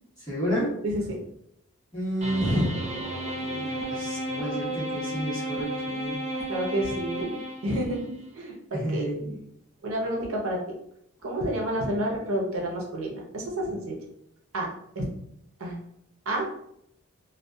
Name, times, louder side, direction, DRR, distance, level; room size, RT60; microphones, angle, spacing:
voice 1, 0.3-0.7 1.9-3.0 3.4-6.1 8.7-9.4, equal, 20° left, -12 dB, 1.2 m, -30 dB
voice 2, 0.8-1.2 6.5-7.3 7.6-9.1 9.8-10.6 11.2-13.9 14.5-14.7 15.0-15.1 15.6-15.8 16.3-16.6, right 1 dB, 85° right, -1 dB, 0.7 m, -29 dB
sound 1, 2.2-8.0, right 1 dB, 30° right, 0.6 m, -33 dB
2.6 x 2.3 x 2.2 m, 0.74 s
head